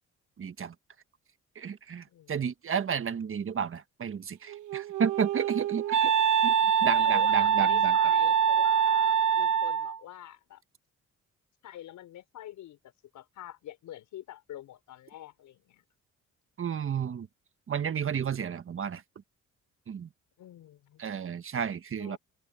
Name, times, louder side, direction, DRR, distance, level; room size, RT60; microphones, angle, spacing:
voice 1, 0.4-0.7 1.5-6.1 6.4-6.5 6.8-8.0 16.6-17.3 17.7-19.0 19.9-20.1 21.0-22.2, right 7 dB, 45° right, 1.5 m, -32 dB
voice 2, 2.1-2.4 6.8-10.6 11.6-15.8 20.4-21.0 22.0-22.2, left 12 dB, 80° left, 5.7 m, -45 dB
Wind instrument woodwind instrument, 4.5-10.0, right 8 dB, 80° right, 1.2 m, -24 dB
cardioid pair, 90°, 30 cm